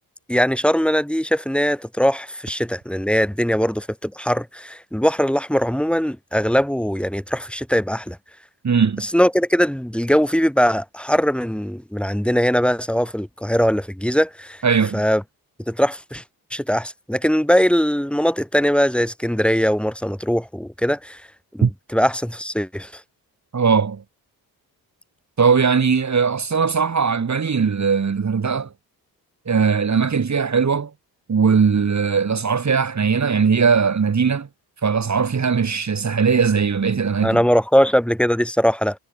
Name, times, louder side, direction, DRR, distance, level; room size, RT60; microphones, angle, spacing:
voice 1, 0.3-8.2 9.0-14.6 14.9-15.2 15.7-16.2 16.5-21.2 21.5-22.9 37.2-39.0, equal, 5° left, 6.3 m, -20 dB
voice 2, 8.6-9.1 14.6-15.0 21.6-21.7 23.5-24.0 25.4-28.7 29.5-30.9 31.3-34.5 34.8-37.4, right 5 dB, 45° right, 3.2 m, -19 dB
cardioid pair, 65°, 39 cm